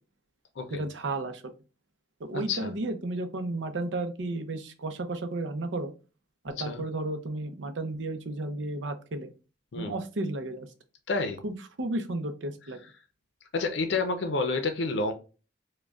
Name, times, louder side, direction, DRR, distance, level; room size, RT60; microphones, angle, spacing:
voice 1, 0.7-1.5 2.2-5.9 6.4-9.3 9.7-10.7 11.4-12.8, right 2 dB, 80° right, 7 dB, 0.6 m, -33 dB
voice 2, 2.3-2.7 6.6-6.8 9.7-9.9 11.1-11.4 13.5-15.1, left 3 dB, 75° left, 6 dB, 0.5 m, -29 dB
4.9 x 2.2 x 2.3 m, 0.33 s
head